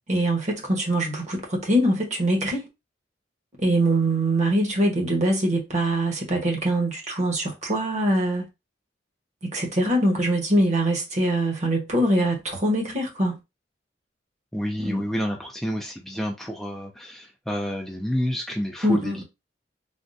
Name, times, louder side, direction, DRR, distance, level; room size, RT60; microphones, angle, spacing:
voice 1, 0.1-2.7 3.6-8.4 9.4-13.4 14.8-15.0 18.8-19.2, right 1 dB, 40° right, 1.0 m, -23 dB
voice 2, 14.5-19.2, equal, ahead, 0.4 m, -29 dB
3.5 x 2.1 x 2.6 m
head